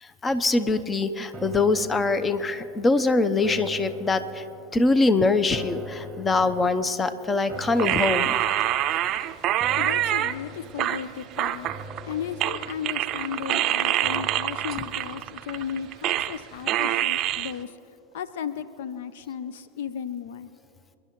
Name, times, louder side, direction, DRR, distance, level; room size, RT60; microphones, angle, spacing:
voice 1, 0.0-4.5 4.7-8.4, left 3 dB, 20° left, 13 dB, 0.8 m, -23 dB
sound 1, 1.3-16.6 17.0-17.1, equal, 20° right, 1.1 m, -44 dB
sound 2, 7.8-10.3 10.8-12.1 12.4-16.4 16.7-17.5, right 13 dB, 45° right, 0.5 m, -26 dB
voice 2, 9.7-11.7 12.0-17.8 18.1-20.5, left 8 dB, 70° left, 13 dB, 0.6 m, -35 dB
28.0 x 11.0 x 3.1 m, 2.7 s
hypercardioid pair, 85°, 0 cm